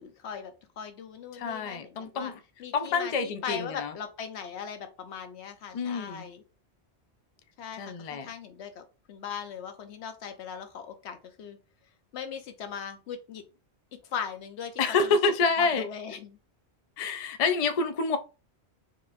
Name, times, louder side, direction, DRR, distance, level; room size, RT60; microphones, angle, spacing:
voice 1, 0.0-2.3 2.6-6.4 7.6-11.6 12.1-13.4 13.9-15.2 15.6-16.4, left 7 dB, 75° left, 1.0 m, -39 dB
voice 2, 1.3-2.4 2.7-3.9 5.7-6.3 7.8-8.3 14.8-15.9 17.0-18.2, left 4 dB, 60° left, 0.3 m, -27 dB
4.6 x 2.9 x 2.5 m
omnidirectional pair, 1.1 m